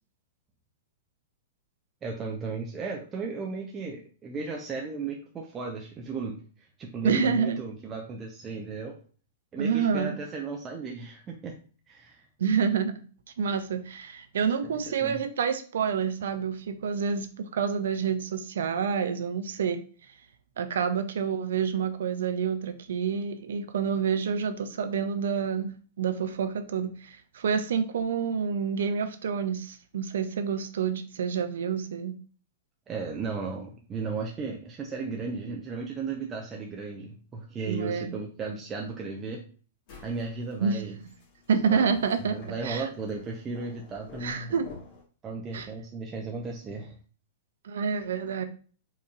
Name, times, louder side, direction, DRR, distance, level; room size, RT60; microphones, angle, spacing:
voice 1, 2.0-6.4 6.8-8.9 9.5-11.5 11.9-12.2 14.6-15.2 32.9-39.4 40.0-40.9 41.6-41.9 42.3-44.5 45.2-46.9, right 4 dB, 25° right, 0 dB, 0.6 m, -35 dB
voice 2, 7.0-7.6 9.6-10.1 12.4-12.9 13.4-19.8 20.6-32.1 37.7-38.1 40.6-41.0 41.5-42.4 42.6-42.9 44.2-44.7 45.5-45.7 47.6-48.4, right 6 dB, 70° right, 9 dB, 0.4 m, -28 dB
sound 1, 39.9-45.0, left 4 dB, 45° left, 1.6 m, -50 dB
4.5 x 3.0 x 2.3 m, 0.40 s
figure-of-eight pair, 105°, 0 cm